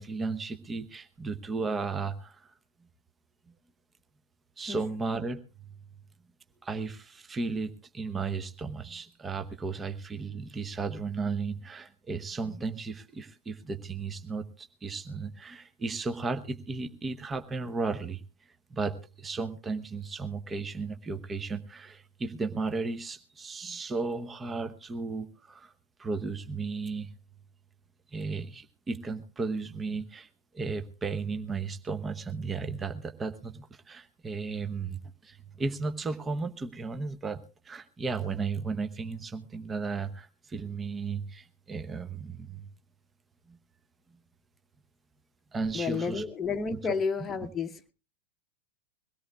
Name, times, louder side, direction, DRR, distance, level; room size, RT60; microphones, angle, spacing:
voice 1, 0.0-2.5 4.6-5.4 6.6-18.2 18.7-25.7 26.0-27.1 28.1-30.3 30.5-42.7 43.5-43.6 45.5-46.2 46.7-46.9 47.2-47.3, right 4 dB, 15° right, 0.9 m, -34 dB
voice 2, 45.7-47.7, left 5 dB, 20° left, 1.0 m, -31 dB
22.5 x 17.0 x 2.3 m
figure-of-eight pair, 90°, 0 cm